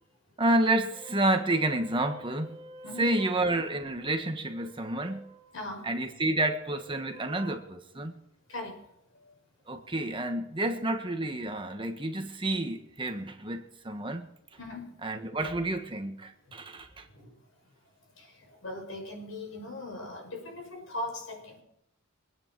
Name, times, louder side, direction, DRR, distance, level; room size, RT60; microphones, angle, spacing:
voice 1, 0.4-5.5 5.8-8.2 9.7-14.3 15.0-17.1, right 1 dB, 25° right, 1.4 m, -30 dB
voice 2, 5.5-5.9 8.5-8.8 10.7-10.8 14.6-14.9 16.5-16.6 17.1-17.3 18.2-21.6, left 2 dB, 75° left, 6.2 m, -39 dB
24.5 x 9.8 x 4.7 m
head